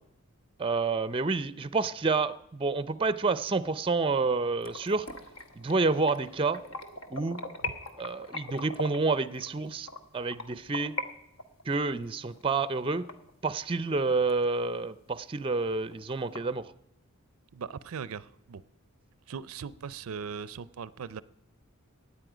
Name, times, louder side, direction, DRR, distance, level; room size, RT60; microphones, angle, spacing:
voice 1, 0.6-5.1 5.6-6.6 7.1-7.4 8.0-9.9 10.1-10.9 11.7-13.0 13.4-16.7, right 3 dB, 25° right, 0.5 m, -29 dB
sound 1, 4.6-11.1 11.4-13.9 14.3-14.4 14.8-14.9 15.3-15.4 15.6-16.4, left 2 dB, 65° left, 1.2 m, -40 dB
voice 2, 17.5-18.6 19.3-21.2, right 6 dB, 75° right, 0.5 m, -39 dB
17.0 x 9.9 x 5.0 m
head